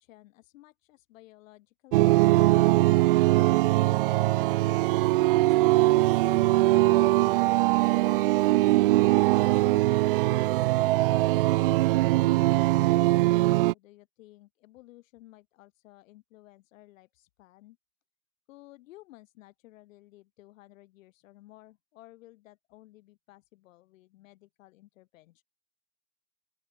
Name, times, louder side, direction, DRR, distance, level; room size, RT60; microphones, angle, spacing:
voice 1, 0.0-2.2 3.0-7.8 8.5-11.3 12.1-17.8 18.5-25.4, left 17 dB, 55° left, 5.2 m, -54 dB
sound 1, 1.9-13.7, right 18 dB, 40° right, 0.4 m, -22 dB
open air
hypercardioid pair, 130°, 47 cm